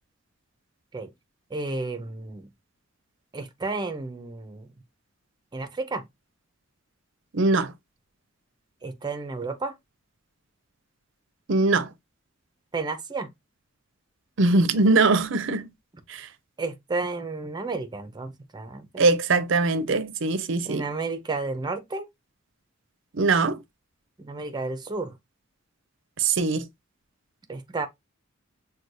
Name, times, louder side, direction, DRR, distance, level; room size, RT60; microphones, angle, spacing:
voice 1, 1.5-2.5 3.3-4.7 5.5-6.0 8.8-9.7 12.7-13.3 16.6-19.0 20.6-22.1 24.2-25.1 27.5-27.9, right 3 dB, 20° right, 0.6 m, -32 dB
voice 2, 7.3-7.7 11.5-11.9 14.4-15.7 16.1-16.3 19.0-20.9 23.1-23.6 26.2-26.7, right 3 dB, 65° right, 0.6 m, -22 dB
6.2 x 2.3 x 2.6 m
head